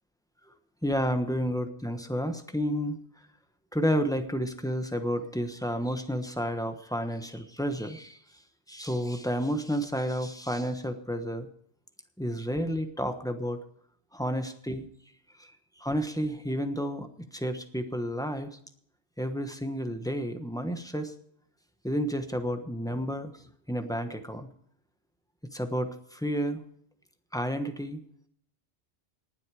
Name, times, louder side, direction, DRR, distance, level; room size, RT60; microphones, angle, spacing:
voice 1, 0.8-3.0 3.7-8.2 8.7-11.5 12.2-13.6 14.1-14.9 15.4-15.5 15.8-18.6 19.2-21.1 21.8-23.3 23.7-24.5 25.5-26.6 27.3-28.0, equal, 5° left, 7 dB, 1.1 m, -31 dB
19.0 x 8.0 x 4.9 m, 0.67 s
omnidirectional pair, 1.1 m